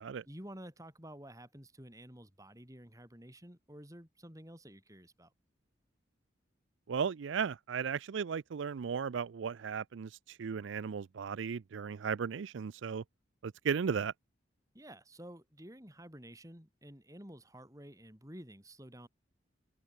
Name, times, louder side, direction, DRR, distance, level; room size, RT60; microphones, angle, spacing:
voice 1, 0.3-5.3 14.7-19.1, right 1 dB, 15° right, 6.2 m, -51 dB
voice 2, 6.9-13.0 13.4-14.1, right 6 dB, 75° right, 0.4 m, -36 dB
head